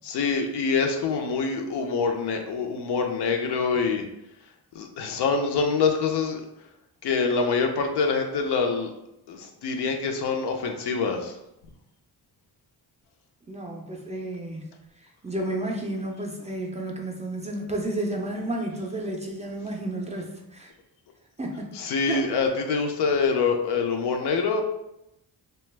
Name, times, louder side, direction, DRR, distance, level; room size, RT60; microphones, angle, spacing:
voice 1, 0.0-4.0 4.7-6.4 7.0-8.9 9.3-11.4 21.7-24.6, left 5 dB, 90° left, 4 dB, 0.6 m, -25 dB
voice 2, 13.5-14.7 15.2-20.7 21.4-21.7 22.0-22.3, right 1 dB, 20° right, 0 dB, 0.3 m, -31 dB
2.8 x 2.2 x 3.2 m, 0.83 s
wide cardioid pair, 135°, 39 cm